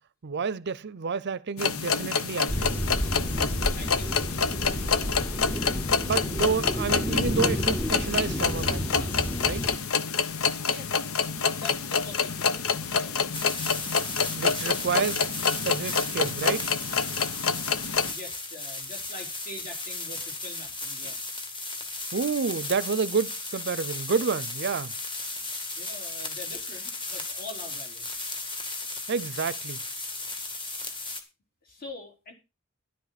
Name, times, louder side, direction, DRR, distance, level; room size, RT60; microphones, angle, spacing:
voice 1, 0.2-2.8 6.0-9.1 9.4-9.7 14.3-15.3 15.6-16.7 21.0-21.1 22.1-24.9 29.1-29.8, right 5 dB, 55° right, 0.6 m, -29 dB
sound 1, 1.6-18.1, left 5 dB, 85° left, 1.0 m, -27 dB
sound 2, 2.5-9.8, equal, 10° left, 0.7 m, -31 dB
voice 2, 3.8-4.2 10.7-13.2 18.0-21.2 25.8-28.1 31.6-32.3, left 2 dB, 45° left, 4.2 m, -44 dB
sound 3, 13.3-31.2, left 2 dB, 25° left, 2.3 m, -35 dB
12.5 x 11.5 x 4.1 m
head